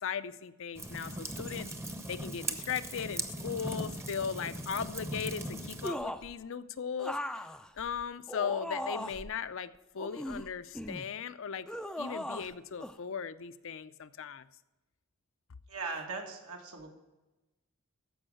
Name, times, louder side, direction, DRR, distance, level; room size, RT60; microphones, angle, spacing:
voice 1, 0.0-1.7 2.1-7.2 7.8-11.7 12.0-14.5, left 7 dB, 60° left, 13 dB, 0.5 m, -37 dB
sound 1, 0.8-5.9, right 1 dB, 10° right, 0.7 m, -39 dB
sound 2, 5.8-6.3 7.0-9.3 10.0-11.1 11.7-12.5 12.8-13.0, left 1 dB, 5° left, 0.4 m, -38 dB
voice 2, 15.7-16.9, right 4 dB, 85° right, 1 dB, 2.1 m, -39 dB
14.0 x 5.5 x 6.3 m, 1.0 s
head